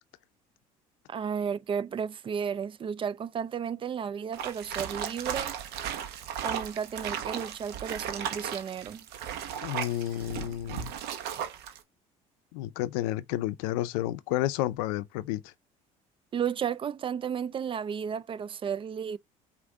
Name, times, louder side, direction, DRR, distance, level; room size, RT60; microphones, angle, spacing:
voice 1, 1.1-5.6 6.4-9.1 16.3-19.2, right 7 dB, 30° right, 0.3 m, -33 dB
sound 1, 4.3-11.8, right 9 dB, 70° right, 1.0 m, -36 dB
voice 2, 9.6-10.9 12.5-15.5, left 14 dB, 80° left, 0.5 m, -31 dB
5.1 x 2.6 x 3.5 m
supercardioid pair, 80°, 18 cm